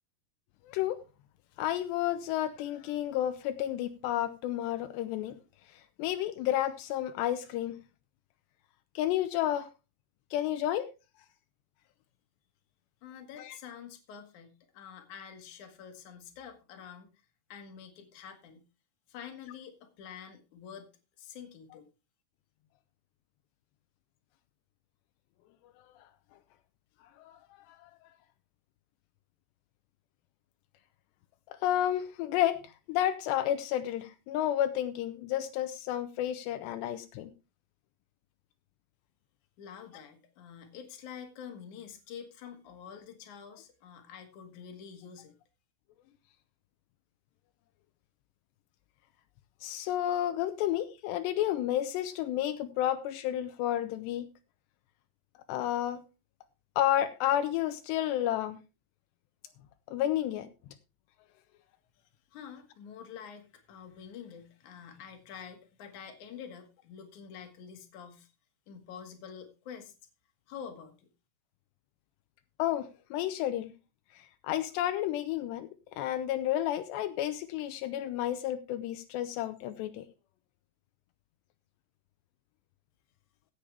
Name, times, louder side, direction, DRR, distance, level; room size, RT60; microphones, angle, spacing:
voice 1, 0.7-1.0 1.6-5.4 6.0-7.8 9.0-9.7 10.3-10.9 13.4-13.6 27.2-27.4 27.7-27.9 31.6-32.6 32.9-37.3 49.6-54.3 55.5-56.0 56.8-58.6 59.9-60.5 72.6-73.7 74.4-75.7 76.0-80.0, left 12 dB, 85° left, 2.9 m, -31 dB
voice 2, 13.0-17.1 17.5-18.6 19.1-20.9 21.2-21.9 39.6-45.3 62.3-68.3 68.7-69.9 70.5-70.9, left 7 dB, 55° left, 2.9 m, -47 dB
16.0 x 8.7 x 3.4 m
omnidirectional pair, 5.0 m